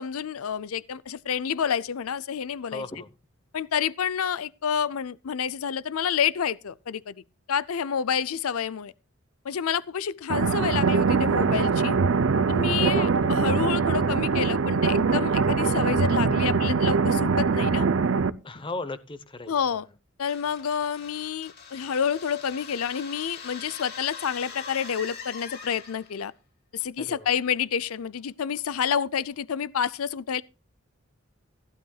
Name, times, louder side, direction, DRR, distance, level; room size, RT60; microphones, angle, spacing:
voice 1, 0.0-2.8 3.5-7.2 7.5-8.9 9.4-12.0 12.5-17.9 19.5-19.9 20.2-26.3 26.7-30.4, left 7 dB, 90° left, 0.5 m, -29 dB
voice 2, 2.7-3.1 12.8-13.3 18.4-19.8 27.0-27.3, left 2 dB, 25° left, 0.9 m, -37 dB
sound 1, 10.3-18.3, right 5 dB, 65° right, 0.5 m, -23 dB
sound 2, 20.3-26.2, left 5 dB, 50° left, 2.8 m, -42 dB
15.5 x 11.5 x 2.3 m
head